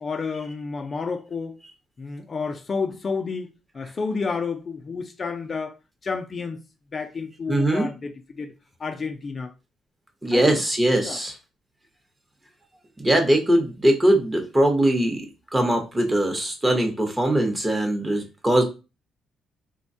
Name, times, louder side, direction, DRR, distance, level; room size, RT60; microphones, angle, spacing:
voice 1, 0.0-1.6 2.0-3.5 3.7-5.8 6.0-6.6 6.9-8.5 8.8-9.5 10.3-10.6 11.0-11.2, left 4 dB, 40° left, 0.4 m, -30 dB
voice 2, 7.5-7.9 10.2-11.3 13.0-15.2 15.5-18.6, right 1 dB, 15° right, 0.8 m, -21 dB
3.3 x 2.1 x 2.6 m
cardioid pair, 90°, 0 cm